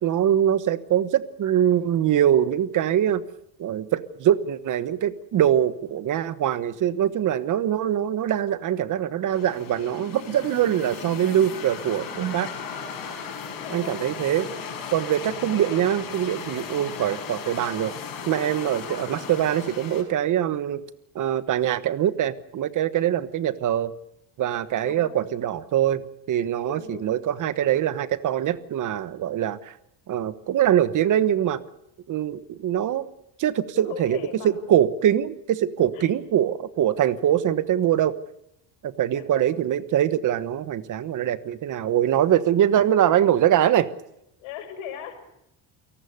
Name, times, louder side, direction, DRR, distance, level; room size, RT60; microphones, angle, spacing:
voice 1, 0.0-3.2 3.6-12.5 13.7-14.5 14.9-17.9 18.3-20.8 21.1-23.9 24.4-26.0 26.3-29.8 30.1-31.6 32.1-33.1 33.4-34.2 34.4-38.1 38.8-43.9, right 10 dB, 40° right, 14 dB, 1.3 m, -23 dB
sound 1, 9.3-20.0, left 6 dB, 45° left, 6.2 m, -36 dB
voice 2, 12.7-13.1 13.6-14.2 24.8-25.3 26.7-27.1 33.7-34.7 35.9-36.1 39.1-39.6 44.4-45.2, left 9 dB, 85° left, 9 dB, 6.6 m, -40 dB
29.0 x 18.5 x 6.8 m, 0.80 s
cardioid pair, 175°, 46 cm